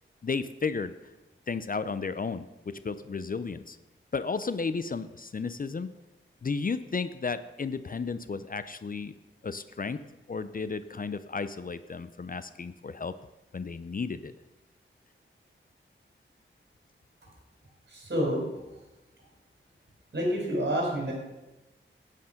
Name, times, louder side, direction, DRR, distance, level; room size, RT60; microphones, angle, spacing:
voice 1, 0.2-1.0 1.5-3.8 4.1-5.9 6.4-9.2 9.4-10.0 10.3-13.1 13.5-14.3, left 4 dB, 40° left, 13 dB, 0.5 m, -33 dB
voice 2, 17.9-18.4 20.1-21.1, equal, 55° right, -1 dB, 4.6 m, -28 dB
9.5 x 9.1 x 5.8 m, 1.0 s
wide cardioid pair, 75°, 21 cm